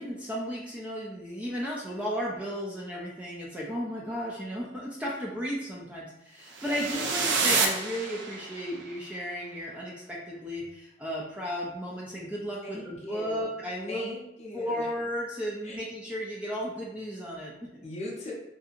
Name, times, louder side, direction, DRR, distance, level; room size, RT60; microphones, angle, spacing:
voice 1, 0.0-14.0 14.5-17.8, equal, 5° right, -4 dB, 0.3 m, -34 dB
sound 1, 6.5-8.7, right 4 dB, 75° right, 0.4 m, -28 dB
voice 2, 6.6-7.1 12.6-13.5 13.9-14.9 15.6-15.8 17.8-18.3, left 1 dB, 35° left, -3 dB, 0.7 m, -40 dB
2.7 x 2.6 x 2.4 m, 0.86 s
head